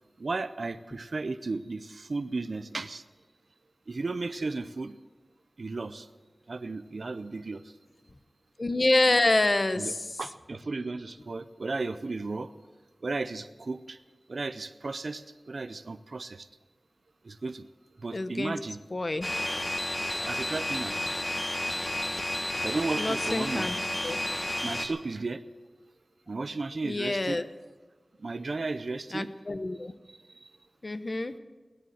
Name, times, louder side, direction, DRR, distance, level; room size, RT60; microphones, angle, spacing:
voice 1, 0.2-3.0 3.9-5.0 5.6-6.1 6.5-7.6 9.7-12.5 13.0-14.0 14.3-16.5 17.2-17.7 18.0-18.8 20.3-21.0 22.6-23.7 24.6-25.4 26.3-27.4 28.2-29.3 30.4-30.5, right 3 dB, 75° right, 12 dB, 0.5 m, -34 dB
voice 2, 8.6-10.0 18.1-18.5 18.9-19.3 23.0-23.7 24.0-24.2 26.8-27.4 29.1-29.9 30.8-31.3, left 2 dB, 50° left, 11 dB, 0.9 m, -27 dB
sound 1, 19.2-24.9, left 1 dB, 30° left, 1.7 m, -31 dB
17.5 x 10.0 x 7.8 m, 1.3 s
wide cardioid pair, 50°, 0 cm